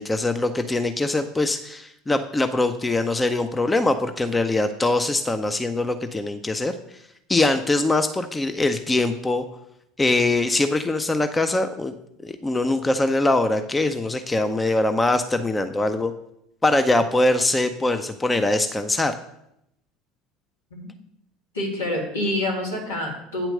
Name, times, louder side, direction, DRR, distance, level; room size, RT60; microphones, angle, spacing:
voice 1, 0.0-6.8 7.3-9.4 10.0-11.9 12.2-16.1 16.6-19.1, left 2 dB, 15° left, 9 dB, 0.6 m, -22 dB
voice 2, 21.5-23.5, left 1 dB, 80° left, -2 dB, 2.2 m, -27 dB
8.8 x 4.4 x 6.5 m, 0.79 s
figure-of-eight pair, 70°, 0 cm